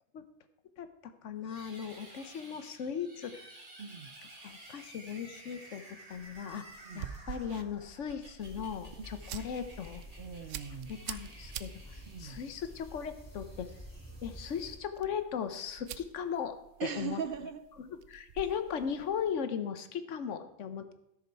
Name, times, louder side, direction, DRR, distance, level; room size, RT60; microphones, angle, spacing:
voice 1, 0.8-3.5 4.4-6.6 6.9-10.0 10.9-13.7 14.2-17.2 17.8-20.9, left 7 dB, 85° left, 10 dB, 1.2 m, -38 dB
sound 1, 1.4-12.7, right 1 dB, 30° right, 1.8 m, -53 dB
voice 2, 3.8-4.1 6.9-7.2 9.0-9.1 10.2-11.0 12.1-12.4 16.8-17.6, right 7 dB, 55° right, 11 dB, 0.7 m, -40 dB
sound 2, 6.1-19.3, right 10 dB, 85° right, 0.9 m, -48 dB
sound 3, 8.4-14.8, equal, 15° left, 3.3 m, -50 dB
13.5 x 7.0 x 4.6 m, 0.84 s
omnidirectional pair, 1.2 m